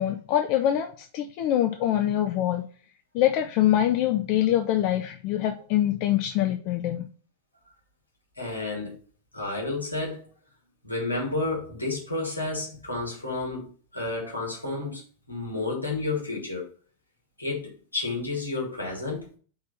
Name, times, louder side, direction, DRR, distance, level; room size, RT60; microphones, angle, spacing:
voice 1, 0.0-2.6 3.1-7.1, left 12 dB, 45° left, 7 dB, 0.5 m, -24 dB
voice 2, 8.4-8.9 9.3-10.3 10.8-15.0 15.3-16.7 17.4-19.3, left 2 dB, 80° left, -3 dB, 2.7 m, -31 dB
4.7 x 4.2 x 5.3 m, 0.41 s
figure-of-eight pair, 90°, 0 cm